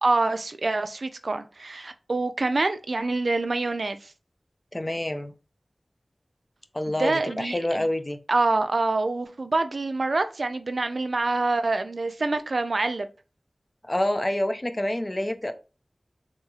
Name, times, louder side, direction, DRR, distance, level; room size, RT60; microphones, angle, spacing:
voice 1, 0.0-4.1 6.9-7.8 8.3-13.1, right 3 dB, 80° right, 0.4 m, -26 dB
voice 2, 4.7-5.3 6.7-8.2 13.8-15.5, left 1 dB, 35° left, 0.5 m, -27 dB
3.9 x 3.0 x 2.3 m
wide cardioid pair, 45°, 0 cm